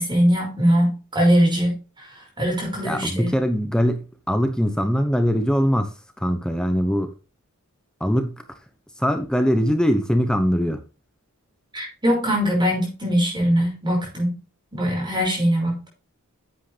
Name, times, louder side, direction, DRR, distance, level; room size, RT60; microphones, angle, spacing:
voice 1, 0.0-3.3 11.7-14.3 14.7-15.9, equal, 20° right, 5.7 m, -21 dB
voice 2, 2.8-7.1 8.0-8.4 9.0-10.8, equal, 5° left, 0.9 m, -22 dB
10.5 x 8.3 x 3.3 m
head